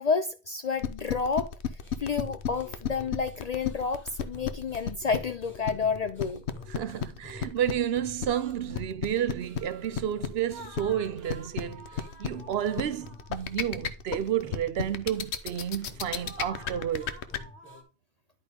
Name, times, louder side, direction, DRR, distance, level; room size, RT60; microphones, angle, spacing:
voice 1, 0.0-6.4, left 5 dB, 55° left, 0.4 m, -30 dB
sound 1, 0.8-17.4, left 8 dB, 80° left, 1.0 m, -32 dB
sound 2, 1.8-17.8, left 2 dB, 10° left, 1.7 m, -49 dB
voice 2, 6.7-17.2, right 10 dB, 70° right, 0.8 m, -31 dB
11.0 x 3.7 x 5.1 m
omnidirectional pair, 1.1 m